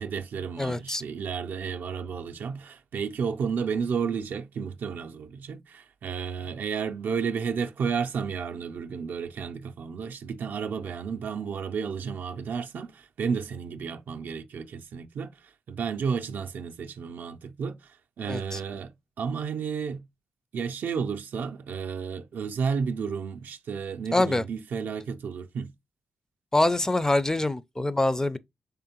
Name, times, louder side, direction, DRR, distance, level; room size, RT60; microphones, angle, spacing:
voice 1, 0.0-20.0 20.5-25.7, right 6 dB, 70° right, 0.4 m, -32 dB
voice 2, 0.6-1.0 18.3-18.6 24.1-24.4 26.5-28.4, left 2 dB, 15° left, 0.4 m, -25 dB
3.6 x 3.4 x 2.8 m
supercardioid pair, 45°, 3 cm